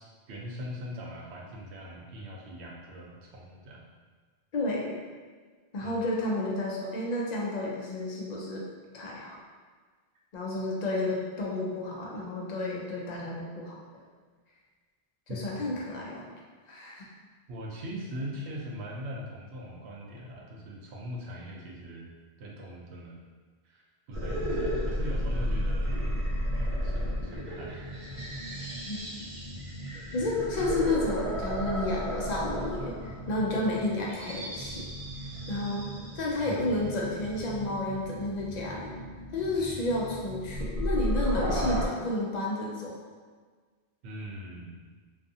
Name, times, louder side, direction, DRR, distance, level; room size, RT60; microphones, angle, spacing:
voice 1, 0.0-3.8 5.8-5.9 15.3-15.4 15.9-16.0 17.5-22.1 22.4-23.2 23.6-23.8 24.1-26.0 26.6-27.9 28.5-28.6 36.4-36.8 39.6-39.9 44.0-44.8, equal, 90° right, -2 dB, 0.9 m, -41 dB
voice 2, 4.5-5.0 5.7-8.6 8.9-9.4 10.3-13.8 15.3-16.3 16.7-17.1 28.9-29.0 30.1-34.8 35.2-35.9 36.1-38.9 39.3-43.0, left 2 dB, 55° left, -3 dB, 0.5 m, -31 dB
sound 1, 24.1-41.9, equal, 55° right, 0.4 m, -33 dB
2.4 x 2.4 x 2.6 m, 1.5 s
omnidirectional pair, 1.1 m